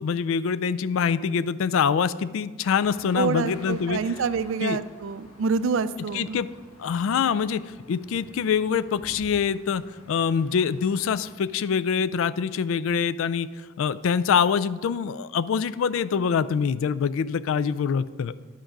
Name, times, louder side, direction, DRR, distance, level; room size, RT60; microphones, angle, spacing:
voice 1, 0.0-4.1 4.6-4.8 6.1-6.5 6.8-7.6 7.9-9.8 10.1-13.5 13.8-18.4, left 6 dB, 65° left, 16 dB, 0.3 m, -25 dB
sound 1, 2.6-11.3, left 1 dB, 80° left, 1.6 m, -50 dB
voice 2, 3.2-6.4, right 5 dB, 60° right, 15 dB, 0.3 m, -27 dB
10.0 x 6.0 x 5.1 m, 1.4 s
head